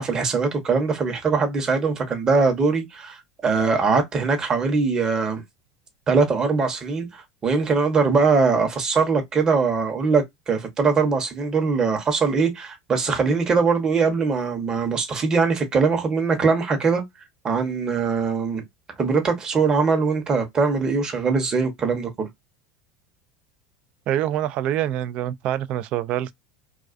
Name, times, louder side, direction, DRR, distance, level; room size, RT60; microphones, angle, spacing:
voice 1, 0.0-5.4 6.1-17.0 17.4-18.6 19.0-22.3, right 4 dB, 30° right, 0.9 m, -22 dB
voice 2, 24.1-26.3, right 12 dB, 50° right, 0.3 m, -25 dB
2.3 x 2.3 x 2.4 m
hypercardioid pair, 100°, 2 cm